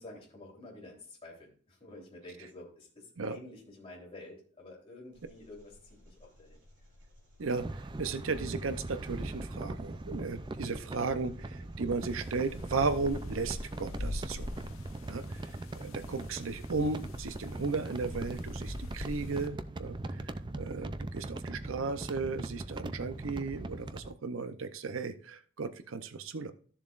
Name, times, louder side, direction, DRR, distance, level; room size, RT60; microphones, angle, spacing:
voice 1, 0.0-5.7 6.0-6.6 15.1-15.3, left 2 dB, 25° left, -3 dB, 3.4 m, -50 dB
Engine, 5.1-15.1, left 1 dB, 55° right, 3.4 m, -59 dB
sound 1, 7.4-24.1, right 2 dB, 20° right, 0.4 m, -40 dB
voice 2, 7.4-14.5 15.1-26.5, right 4 dB, 80° right, 11 dB, 0.7 m, -35 dB
sound 2, 12.0-19.5, left 1 dB, 80° left, 0.7 m, -44 dB
14.0 x 7.1 x 2.5 m, 0.44 s
head